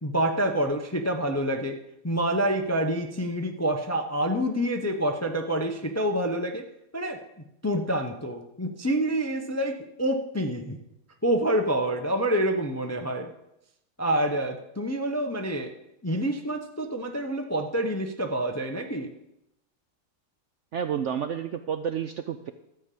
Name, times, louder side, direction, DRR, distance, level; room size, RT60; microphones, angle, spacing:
voice 1, 0.0-1.8 2.0-6.7 6.9-7.2 7.6-10.8 11.2-13.3 14.0-15.7 16.0-19.1, right 1 dB, 20° left, 5 dB, 0.5 m, -27 dB
voice 2, 20.7-22.5, right 8 dB, 70° right, 9 dB, 0.7 m, -30 dB
13.0 x 5.5 x 8.3 m, 0.85 s
omnidirectional pair, 1.7 m